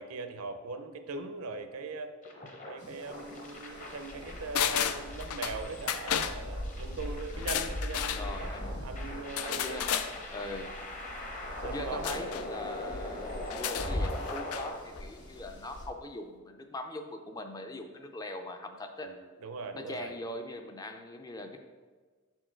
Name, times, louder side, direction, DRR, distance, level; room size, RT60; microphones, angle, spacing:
voice 1, 0.0-2.1 2.7-8.5 8.8-9.8 11.6-12.2 19.0-20.1, right 3 dB, 80° right, 8 dB, 0.6 m, -40 dB
sound 1, 2.2-14.7, left 1 dB, 35° left, 0.9 m, -42 dB
sound 2, 2.8-15.9, left 1 dB, 55° left, 1.4 m, -41 dB
sound 3, 4.5-5.6 5.9-6.4 7.3-8.2 9.4-10.1 12.0-12.5 13.4-14.7 15.0-15.1, left 9 dB, 85° left, 0.4 m, -32 dB
voice 2, 8.1-8.8 9.4-10.7 11.6-19.2 19.7-21.6, left 2 dB, 15° left, 5 dB, 0.4 m, -41 dB
6.7 x 4.4 x 4.4 m, 1.4 s
head